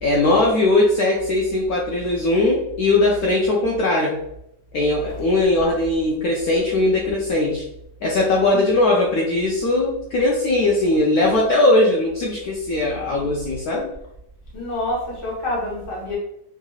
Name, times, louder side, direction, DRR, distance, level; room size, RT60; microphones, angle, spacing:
voice 1, 0.0-4.2 4.7-7.6 8.0-13.9, left 2 dB, 70° left, -2 dB, 1.0 m, -19 dB
voice 2, 14.5-16.2, left 1 dB, 20° left, -5 dB, 0.9 m, -27 dB
3.7 x 2.9 x 2.3 m, 0.79 s
omnidirectional pair, 1.9 m